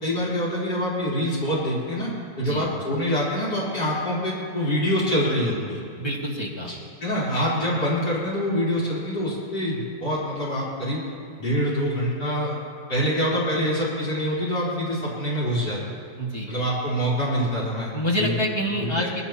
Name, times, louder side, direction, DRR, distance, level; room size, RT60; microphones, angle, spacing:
voice 1, 0.0-5.8 7.0-11.0 11.4-12.5 12.9-15.8 16.5-17.9 18.2-18.3 19.0-19.1, equal, 85° left, -9 dB, 4.6 m, -25 dB
voice 2, 6.0-6.7 16.2-16.5 17.9-19.2, equal, 15° left, -2 dB, 1.9 m, -27 dB
21.0 x 16.5 x 3.0 m, 2.6 s
omnidirectional pair, 1.7 m